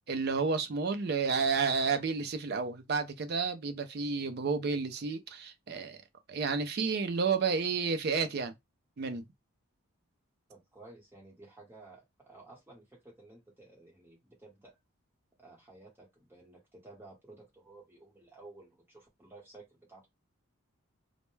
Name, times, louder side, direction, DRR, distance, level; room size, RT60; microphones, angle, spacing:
voice 1, 0.1-6.0 6.3-8.5 9.0-9.2, right 5 dB, 45° right, 0.4 m, -31 dB
voice 2, 10.5-14.7 15.4-20.1, right 2 dB, 10° right, 1.0 m, -54 dB
2.2 x 2.1 x 3.1 m
head